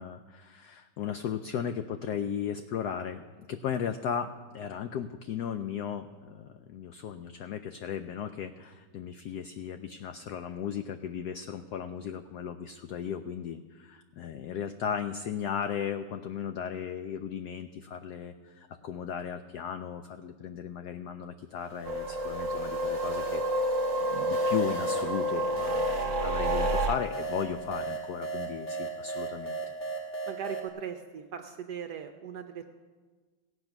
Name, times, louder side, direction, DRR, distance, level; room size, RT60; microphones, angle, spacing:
voice 1, 0.0-3.2 3.5-23.4 24.1-29.6, left 8 dB, 90° left, 9 dB, 0.8 m, -36 dB
sound 1, 21.6-30.7, right 3 dB, 35° left, 2.0 m, -38 dB
sound 2, 21.8-27.0, right 1 dB, 45° right, 1.2 m, -29 dB
voice 2, 30.3-32.6, right 8 dB, 70° right, 6 dB, 0.9 m, -39 dB
17.0 x 8.0 x 5.9 m, 1.4 s
omnidirectional pair, 2.3 m